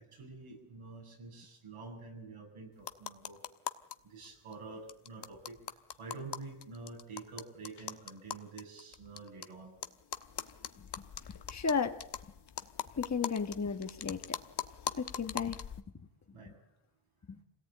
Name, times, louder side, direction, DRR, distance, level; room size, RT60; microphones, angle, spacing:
voice 1, 0.0-3.4 4.0-5.6 6.0-9.7 10.5-10.7 16.3-16.5, right 4 dB, 85° right, 1 dB, 7.9 m, -48 dB
sound 1, 2.8-3.9 4.2-4.3 4.5-4.6 4.9-9.4 9.8-15.8, left 8 dB, 55° left, 1.3 m, -42 dB
voice 2, 11.5-12.0 13.0-14.4 15.0-15.6 17.3-17.4, left 5 dB, 35° left, 5 dB, 1.5 m, -33 dB
26.5 x 18.0 x 8.9 m, 0.79 s
cardioid pair, 95°, 49 cm